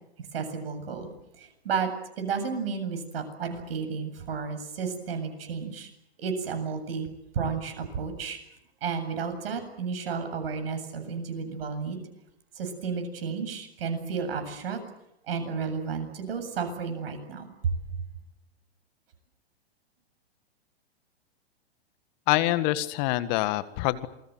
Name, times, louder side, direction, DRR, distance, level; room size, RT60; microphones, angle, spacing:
voice 1, 0.3-1.1 1.4-1.9 2.2-5.9 6.2-7.1 7.3-8.4 8.8-12.0 12.5-14.8 15.3-17.7, right 5 dB, 65° right, 7 dB, 7.9 m, -32 dB
voice 2, 22.3-24.1, left 17 dB, 45° left, 13 dB, 1.7 m, -25 dB
28.0 x 21.5 x 8.0 m, 0.82 s
hypercardioid pair, 115°, 32 cm